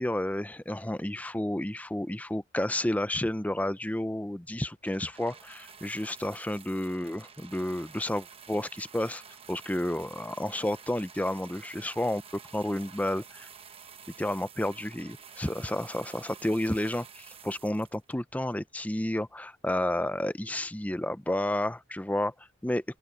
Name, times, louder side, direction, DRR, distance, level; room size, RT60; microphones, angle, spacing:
voice 1, 0.0-9.2 9.5-13.5 14.2-23.0, left 1 dB, 10° left, 0.6 m, -31 dB
sound 1, 4.9-18.5 19.3-19.4, right 7 dB, 35° right, 1.0 m, -50 dB
open air
head